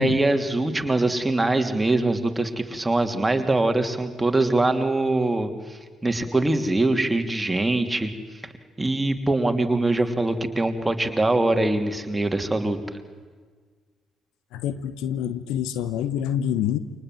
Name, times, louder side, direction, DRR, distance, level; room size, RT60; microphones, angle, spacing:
voice 1, 0.0-8.1 8.4-8.5 8.8-12.8, right 2 dB, 15° right, 6 dB, 3.1 m, -23 dB
voice 2, 14.5-16.8, left 9 dB, 60° left, 13 dB, 1.2 m, -26 dB
29.0 x 25.5 x 7.7 m, 1.5 s
figure-of-eight pair, 45°, 0 cm